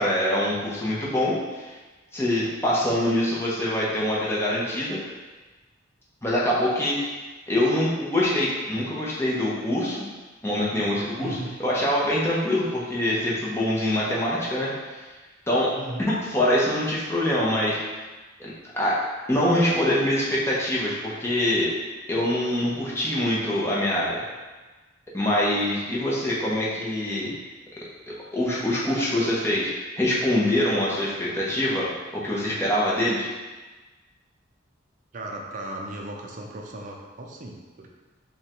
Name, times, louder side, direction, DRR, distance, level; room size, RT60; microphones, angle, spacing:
voice 1, 0.0-1.8 2.1-5.0 6.2-7.0 7.5-10.1 10.4-15.1 15.5-15.7 16.1-17.8 18.4-19.0 19.3-21.7 22.1-24.2 25.1-27.3 28.1-33.3, left 1 dB, 15° left, -7 dB, 0.8 m, -24 dB
voice 2, 11.2-11.6 15.8-16.1 35.1-37.9, right 1 dB, 45° right, 0 dB, 0.5 m, -36 dB
5.3 x 2.3 x 3.0 m, 1.3 s
head